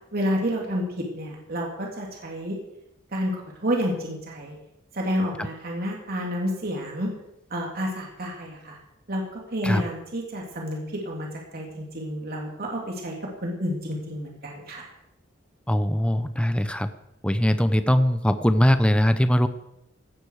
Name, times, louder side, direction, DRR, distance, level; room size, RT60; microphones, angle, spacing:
voice 1, 0.1-2.5 3.1-4.5 4.9-7.1 7.5-8.8 9.1-13.1 13.4-14.9, equal, 55° right, -1 dB, 3.2 m, -30 dB
voice 2, 15.7-16.9 17.2-19.5, equal, 5° left, 10 dB, 0.8 m, -21 dB
17.0 x 13.5 x 4.9 m, 0.83 s
head